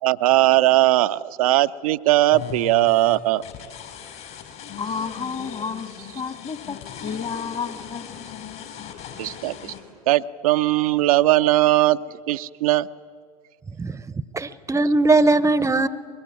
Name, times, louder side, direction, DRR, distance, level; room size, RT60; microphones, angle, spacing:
voice 1, 0.0-3.4 9.2-9.7 10.1-12.9, right 16 dB, 65° right, 10 dB, 0.5 m, -19 dB
sound 1, 2.3-9.8, left 8 dB, 55° left, 5.0 m, -38 dB
voice 2, 4.8-5.9 6.2-8.0, left 6 dB, 35° left, 11 dB, 1.8 m, -31 dB
voice 3, 14.3-15.9, right 2 dB, 15° right, 16 dB, 0.8 m, -19 dB
24.5 x 22.0 x 8.6 m, 2.1 s
figure-of-eight pair, 65°, 20 cm